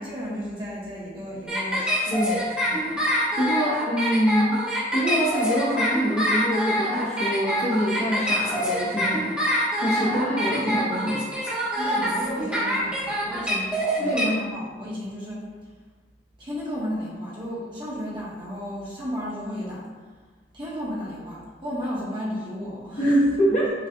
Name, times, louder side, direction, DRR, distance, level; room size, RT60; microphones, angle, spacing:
voice 1, 0.0-3.0 11.8-15.5 16.4-19.9 20.5-23.1, equal, 30° right, -7 dB, 1.1 m, -33 dB
sound 1, 1.5-14.2, equal, 5° right, 1.2 m, -25 dB
voice 2, 3.0-4.6 4.9-9.2 9.8-11.2 14.0-14.3 23.0-23.7, equal, 40° left, -6 dB, 1.0 m, -24 dB
6.5 x 2.4 x 2.7 m, 1.4 s
head